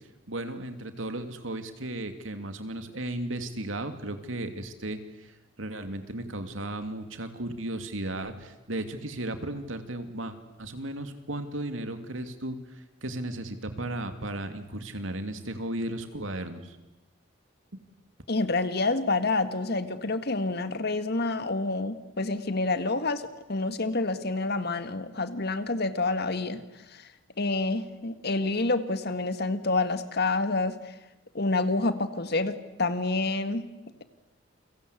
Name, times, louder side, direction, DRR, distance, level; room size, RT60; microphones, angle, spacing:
voice 1, 0.3-16.8 17.7-17.8, right 1 dB, 75° right, 8 dB, 2.8 m, -35 dB
voice 2, 18.3-26.6 26.9-27.1 27.4-31.0 31.3-33.7, left 3 dB, 55° left, 11 dB, 1.8 m, -28 dB
29.5 x 23.5 x 8.4 m, 1.0 s
head